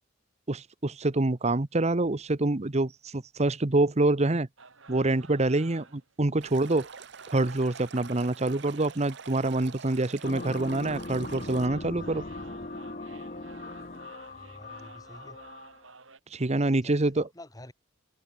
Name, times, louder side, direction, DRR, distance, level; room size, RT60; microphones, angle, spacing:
voice 1, 0.5-4.5 4.9-6.9 7.3-12.2 16.3-17.2, right 2 dB, 35° right, 1.0 m, -26 dB
sound 1, 4.6-16.2, right 4 dB, 90° right, 6.0 m, -52 dB
Stream, 6.4-11.7, right 6 dB, 60° right, 1.1 m, -46 dB
sound 2, 10.2-15.9, left 2 dB, 40° left, 1.9 m, -40 dB
voice 2, 14.3-15.4 16.5-17.7, left 1 dB, 20° left, 3.9 m, -49 dB
head